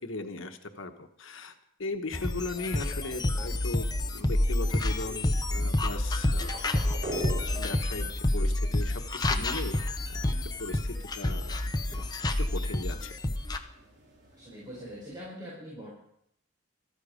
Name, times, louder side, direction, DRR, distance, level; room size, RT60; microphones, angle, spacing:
voice 1, 0.0-1.5 1.8-6.5 7.1-9.8 10.1-10.3 10.6-11.5 12.4-13.2, left 3 dB, 85° left, 6 dB, 1.2 m, -38 dB
sound 1, 2.1-13.6, left 1 dB, 20° left, 0.8 m, -29 dB
sound 2, 2.3-15.2, right 1 dB, 55° right, 4.6 m, -47 dB
voice 2, 14.3-15.9, equal, 20° right, -5 dB, 5.0 m, -43 dB
14.0 x 13.0 x 5.1 m, 0.72 s
head